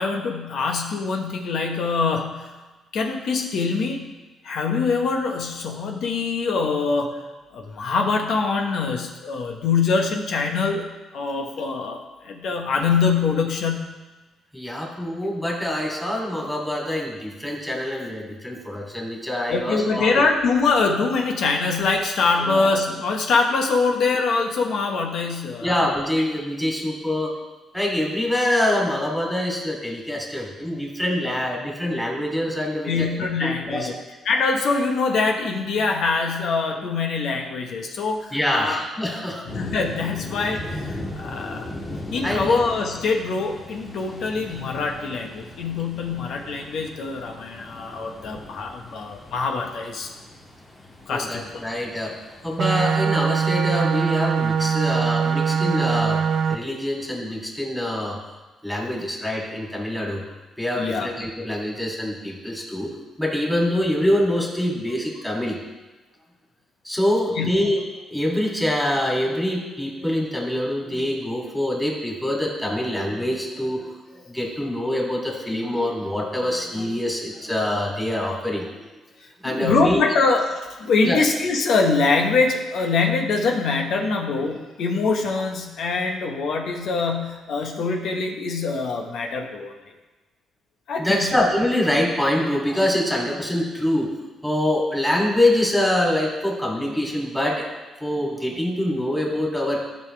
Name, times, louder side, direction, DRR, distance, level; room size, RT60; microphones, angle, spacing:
voice 1, 0.0-2.5 2.9-4.1 4.4-7.2 7.5-13.9 14.8-14.9 19.5-25.9 32.9-33.9 34.2-38.8 39.4-41.7 42.1-50.1 51.1-51.6 60.8-61.1 67.3-67.5 79.4-89.7 90.9-91.4, left 4 dB, 70° left, 3 dB, 1.3 m, -24 dB
voice 2, 14.5-20.3 22.4-22.7 25.6-27.3 27.7-33.1 33.4-33.9 38.3-39.4 42.2-42.6 51.1-52.1 52.4-56.2 56.5-58.2 58.6-60.2 60.6-62.9 63.2-65.6 66.8-67.8 68.1-78.9 79.4-80.0 81.0-81.2 91.0-94.1 94.4-97.6 98.0-99.8, left 1 dB, 10° left, -2 dB, 2.8 m, -25 dB
sound 1, 39.5-52.8, left 1 dB, 25° left, 2.5 m, -38 dB
sound 2, 52.6-56.6, right 6 dB, 60° right, 0.6 m, -22 dB
13.5 x 5.6 x 3.4 m, 1.2 s
cardioid pair, 90°, 0 cm